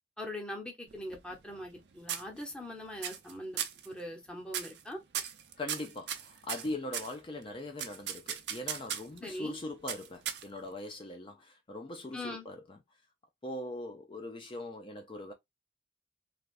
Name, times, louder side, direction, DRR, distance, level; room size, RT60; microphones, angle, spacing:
voice 1, 0.2-5.0 9.2-9.6 12.1-12.4, left 1 dB, 5° left, 0.8 m, -41 dB
sound 1, 0.9-1.8 2.1-2.7 3.0-3.3 3.6-3.9 4.5-4.8 5.1-7.1 7.8-9.2 9.9-10.7, right 9 dB, 70° right, 0.6 m, -37 dB
voice 2, 5.6-12.8 13.4-15.3, left 2 dB, 30° left, 0.5 m, -41 dB
3.3 x 2.4 x 2.5 m
head